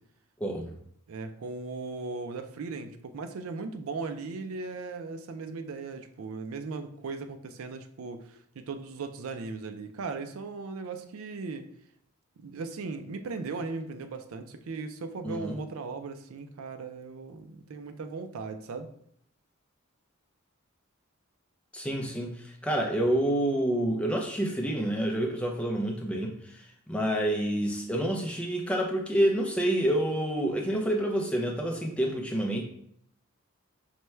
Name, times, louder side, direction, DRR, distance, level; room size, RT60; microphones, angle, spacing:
voice 1, 0.4-0.7 15.2-15.5 21.7-26.4 26.9-32.6, right 1 dB, 5° left, 0 dB, 0.5 m, -28 dB
voice 2, 1.1-11.7 12.4-18.9, right 4 dB, 85° right, 8 dB, 0.4 m, -38 dB
5.6 x 2.2 x 3.1 m, 0.70 s
head